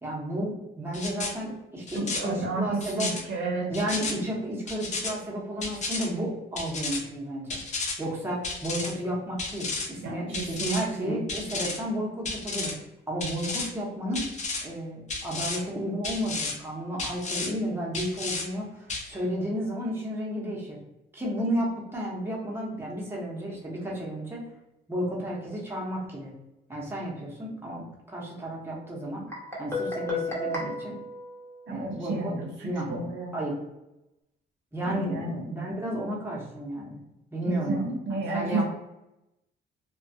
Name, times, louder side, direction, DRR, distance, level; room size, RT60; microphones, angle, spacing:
voice 1, 0.0-3.1 3.7-7.6 8.0-12.7 13.1-14.3 14.6-20.8 21.1-24.4 24.9-26.4 26.7-29.3 29.6-31.0 31.7-32.4 32.6-32.9 33.3-33.5 34.7-37.0 37.3-37.8 38.1-38.6, equal, 10° right, -4 dB, 0.9 m, -32 dB
sound 1, 0.9-1.3 1.9-2.2 2.8-3.2 3.7-4.1 4.7-5.1 5.6-6.1 6.6-7.0 7.5-8.0 8.4-8.9 9.4-9.9 10.3-10.8 11.3-11.8 12.3-12.7 13.2-13.7 14.1-14.6 15.1-15.6 16.0-16.5 17.0-17.5 17.9-18.4 18.9-19.1, left 3 dB, 35° left, 0.6 m, -32 dB
voice 2, 1.9-3.7 10.0-11.2 31.7-33.4 34.8-35.4 37.5-38.6, right 3 dB, 70° right, 0 dB, 0.7 m, -32 dB
Guitar, 29.3-32.1, left 2 dB, 15° left, 1.0 m, -34 dB
2.3 x 2.2 x 2.6 m, 0.91 s
cardioid pair, 90°, 20 cm